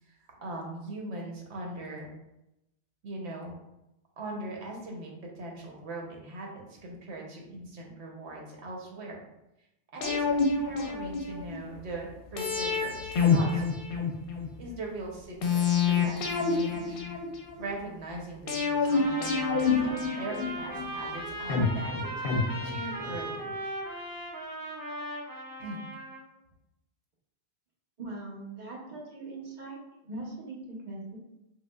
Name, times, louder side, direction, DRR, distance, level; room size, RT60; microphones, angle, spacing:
voice 1, 0.4-2.1 3.0-3.6 4.2-9.2 9.9-14.1 14.6-17.0 17.6-23.5 25.6-25.8, right 2 dB, 80° right, -1 dB, 1.0 m, -40 dB
sound 1, 10.0-11.6 12.4-14.5 15.4-17.6 18.5-20.8 21.5-23.2 23.5-23.6, left 5 dB, 60° left, 0.7 m, -27 dB
Trumpet, 18.8-26.2, right 1 dB, 30° right, 0.4 m, -38 dB
voice 2, 28.0-29.8 30.0-31.2, right 2 dB, 45° right, -3 dB, 0.9 m, -40 dB
4.7 x 2.1 x 2.3 m, 0.89 s
omnidirectional pair, 1.1 m